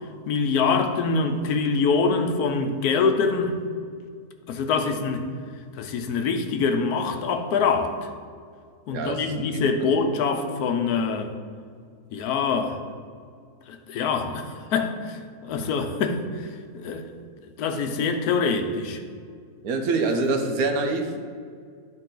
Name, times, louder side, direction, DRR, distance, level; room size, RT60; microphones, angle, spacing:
voice 1, 0.3-3.5 4.5-5.3 5.8-8.0 8.9-11.3 12.1-12.8 13.7-16.5 16.7-17.1 17.6-19.0, left 5 dB, 85° left, 7 dB, 1.2 m, -24 dB
voice 2, 8.9-9.9 19.6-21.2, right 3 dB, 75° right, 5 dB, 1.2 m, -26 dB
10.5 x 4.0 x 3.8 m, 2.1 s
omnidirectional pair, 1.6 m